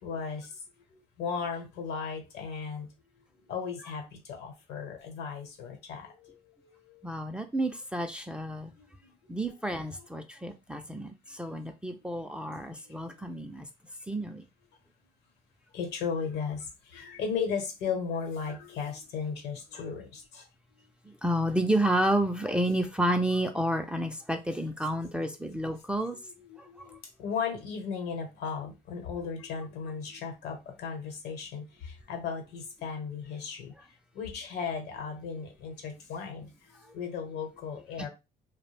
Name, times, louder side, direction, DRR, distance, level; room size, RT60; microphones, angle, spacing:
voice 1, 0.0-7.1 8.6-9.4 10.0-10.1 11.3-11.4 11.9-12.3 12.7-13.3 15.7-20.9 25.0-25.2 25.4-25.5 26.1-33.8 34.1-38.1, left 6 dB, 80° left, 5 dB, 0.9 m, -37 dB
voice 2, 7.0-8.7 9.3-13.7 14.1-14.4 21.0-26.2 26.6-27.0, right 1 dB, 5° right, 4 dB, 0.3 m, -30 dB
2.3 x 2.0 x 3.2 m, 0.26 s
cardioid pair, 110°, 17 cm